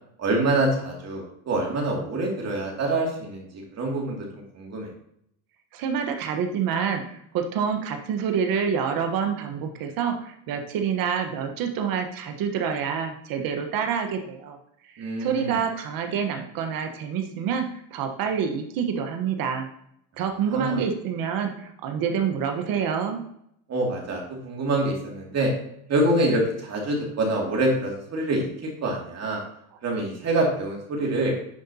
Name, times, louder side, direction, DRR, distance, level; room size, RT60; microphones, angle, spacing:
voice 1, 0.2-3.4 3.7-4.9 15.0-15.6 20.5-20.8 23.7-25.5 25.9-28.5 28.8-29.4 29.8-31.3, right 2 dB, 45° right, -2 dB, 2.5 m, -25 dB
voice 2, 5.7-14.6 14.9-19.7 20.2-23.2, right 7 dB, 65° right, 5 dB, 1.2 m, -27 dB
10.0 x 5.1 x 2.9 m, 0.73 s
supercardioid pair, 95°, 37 cm